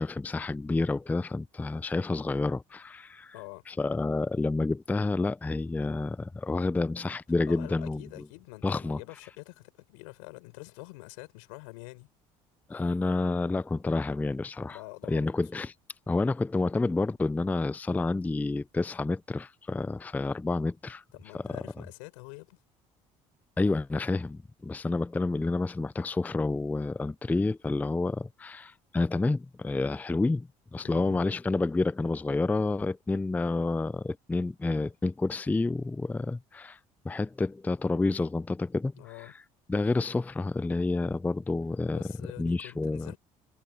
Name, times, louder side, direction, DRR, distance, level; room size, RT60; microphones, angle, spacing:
voice 1, 0.0-3.3 3.7-8.3 8.6-9.0 12.7-14.8 15.1-15.7 16.1-21.0 21.3-21.5 23.6-36.8 37.0-38.9 39.2-39.3 39.7-43.1, left 3 dB, 10° left, 0.4 m, -29 dB
voice 2, 3.3-3.6 7.5-12.1 14.7-15.3 21.1-22.6 30.8-31.3 39.0-39.3 41.9-43.2, left 27 dB, 80° left, 5.3 m, -46 dB
hypercardioid pair, 70°, 16 cm